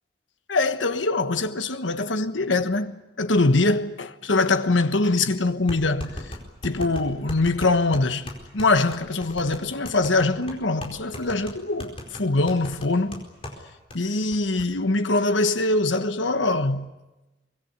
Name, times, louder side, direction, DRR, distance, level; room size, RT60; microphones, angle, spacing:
voice 1, 0.5-6.2 6.6-13.2 13.9-16.9, left 2 dB, 85° left, 1.3 m, -23 dB
sound 1, 5.7-13.6 13.9-14.0 14.3-14.7, left 1 dB, 30° left, 4.5 m, -37 dB
24.0 x 21.0 x 9.7 m
head